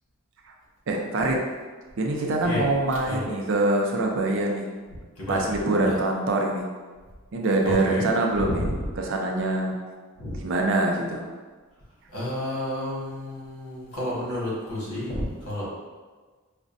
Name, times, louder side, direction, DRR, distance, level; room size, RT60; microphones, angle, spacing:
voice 1, 0.9-1.4 2.0-4.7 5.3-6.7 7.3-8.7 9.0-9.7 10.4-11.3, right 2 dB, 60° right, 1 dB, 0.5 m, -24 dB
voice 2, 7.6-8.1 8.4-8.9 10.2-10.4 12.1-15.7, left 1 dB, 90° left, -6 dB, 1.4 m, -30 dB
4.9 x 2.2 x 2.6 m, 1.4 s
head